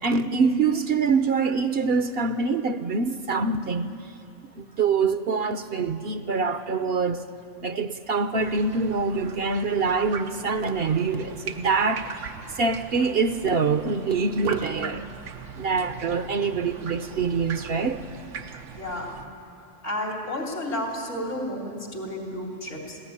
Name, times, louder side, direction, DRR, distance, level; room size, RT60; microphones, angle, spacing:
voice 1, 0.0-3.9 4.6-7.2 7.6-15.0 15.6-18.0, right 4 dB, 60° right, 0.9 m, -25 dB
sound 1, 8.3-19.3, right 6 dB, 90° right, 1.2 m, -40 dB
voice 2, 18.8-19.2 19.8-23.0, left 1 dB, 80° left, 3.5 m, -32 dB
20.5 x 16.0 x 9.8 m
omnidirectional pair, 1.2 m